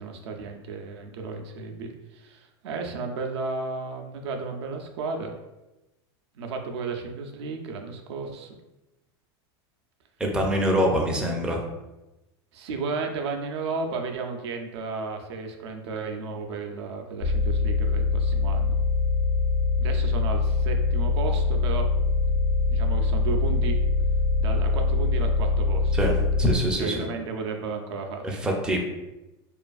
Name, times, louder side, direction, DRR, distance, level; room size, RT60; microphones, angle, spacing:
voice 1, 0.0-5.3 6.3-8.6 12.5-18.8 19.8-21.9 22.7-23.8 24.4-26.0 26.8-28.5, right 4 dB, 80° right, 3 dB, 0.4 m, -33 dB
voice 2, 10.2-11.6 25.9-27.1 28.2-28.8, equal, 5° right, 0 dB, 0.4 m, -24 dB
sound 1, 17.2-26.5, left 3 dB, 75° left, 0.9 m, -23 dB
2.4 x 2.4 x 2.3 m, 1.0 s
supercardioid pair, 115°, 14 cm